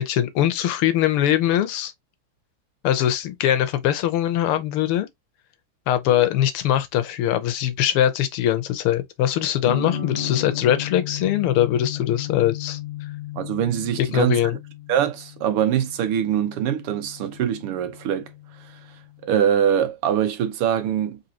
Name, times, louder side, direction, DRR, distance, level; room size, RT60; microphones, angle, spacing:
voice 1, 0.0-1.9 2.8-5.1 5.9-12.8 14.0-14.6, left 11 dB, 80° left, 1.7 m, -22 dB
sound 1, 9.6-19.4, left 9 dB, 45° left, 0.8 m, -35 dB
voice 2, 13.4-14.4 14.9-18.3 19.2-21.2, right 9 dB, 85° right, 1.8 m, -23 dB
3.9 x 3.9 x 2.8 m
omnidirectional pair, 2.4 m